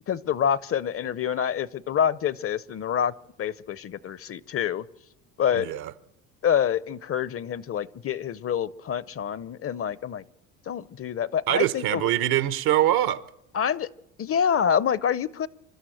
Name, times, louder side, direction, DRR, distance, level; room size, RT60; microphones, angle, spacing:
voice 1, 0.1-3.1 3.4-4.8 5.4-5.7 6.4-10.2 10.7-12.1 13.5-13.9 14.2-15.5, left 8 dB, 35° left, 0.7 m, -26 dB
voice 2, 5.5-5.9 11.5-13.2, right 13 dB, 70° right, 1.1 m, -23 dB
26.5 x 12.5 x 7.8 m
supercardioid pair, 80°, 39 cm